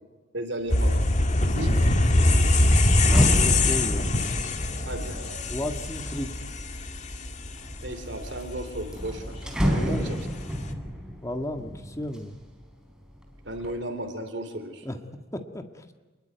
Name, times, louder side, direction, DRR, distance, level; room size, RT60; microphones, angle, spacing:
voice 1, 0.3-1.1 1.5-2.0 4.8-5.4 7.8-10.2 13.4-14.9, right 1 dB, 65° right, 7 dB, 3.1 m, -35 dB
sound 1, 0.7-10.7, left 2 dB, 40° left, 1.9 m, -23 dB
sound 2, 0.7-1.0 1.4-6.8 7.4-8.1 8.4-8.5 8.8-12.7 13.1-13.7, equal, 5° right, 4.0 m, -31 dB
voice 2, 1.7-2.1 3.1-4.2 5.5-6.3 9.7-10.2 11.2-12.4 14.8-15.0 15.3-15.9, left 1 dB, 15° left, 6 dB, 1.8 m, -34 dB
27.0 x 21.0 x 9.4 m, 1.3 s
head